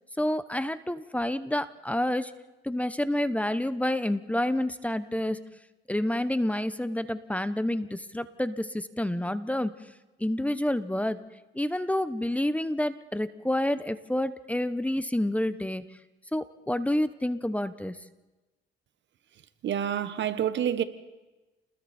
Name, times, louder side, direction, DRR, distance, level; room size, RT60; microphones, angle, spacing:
voice 1, 0.2-2.3 2.6-5.4 5.9-9.8 10.2-11.2 11.5-15.9 16.3-18.0, left 1 dB, 5° left, 1.0 m, -28 dB
voice 2, 19.6-20.8, right 9 dB, 65° right, 1.4 m, -28 dB
29.5 x 20.5 x 4.4 m
cardioid pair, 90°, 20 cm